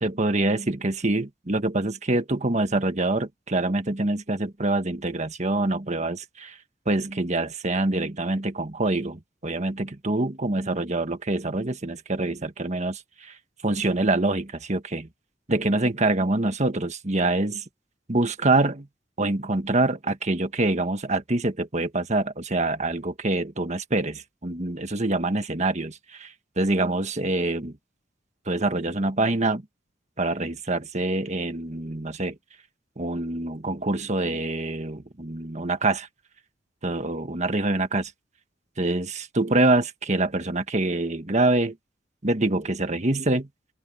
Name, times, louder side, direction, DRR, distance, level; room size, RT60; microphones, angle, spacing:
voice 1, 0.0-6.6 6.8-13.4 13.6-15.1 15.5-17.6 18.1-18.9 19.2-27.7 28.5-29.6 30.2-32.3 33.0-36.1 36.8-38.1 38.8-41.8 42.2-43.5, right 2 dB, 40° right, 1.6 m, -25 dB
open air
head